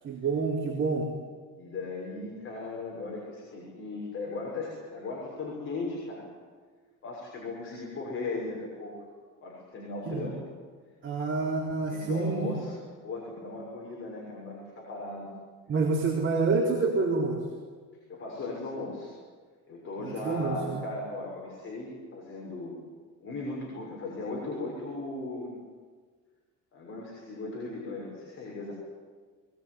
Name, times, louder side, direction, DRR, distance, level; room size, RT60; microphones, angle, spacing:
voice 1, 0.0-1.1 10.1-10.3 11.0-12.5 15.7-17.4 20.0-20.8, right 4 dB, 35° right, -1 dB, 3.8 m, -28 dB
voice 2, 1.6-6.3 7.0-9.0 9.4-10.4 11.9-12.7 13.0-15.3 18.1-19.1 19.7-22.8 23.2-25.6 26.7-28.7, left 2 dB, 40° left, -3 dB, 6.7 m, -37 dB
22.5 x 20.5 x 9.9 m, 1.5 s
cardioid pair, 135°, 32 cm